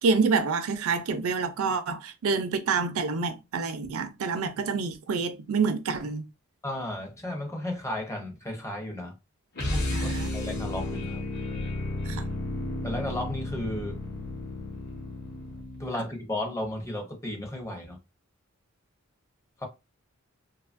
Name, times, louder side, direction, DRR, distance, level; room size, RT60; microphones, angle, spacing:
voice 1, 0.0-6.2 9.9-10.3 12.0-12.3, right 4 dB, 75° right, 0.4 m, -27 dB
voice 2, 6.6-9.2 9.6-11.3 12.8-14.0 15.8-18.0 19.6-19.7, left 1 dB, 15° left, 0.6 m, -34 dB
sound 1, 9.5-16.0, left 1 dB, 45° left, 0.8 m, -33 dB
2.7 x 2.4 x 2.4 m
head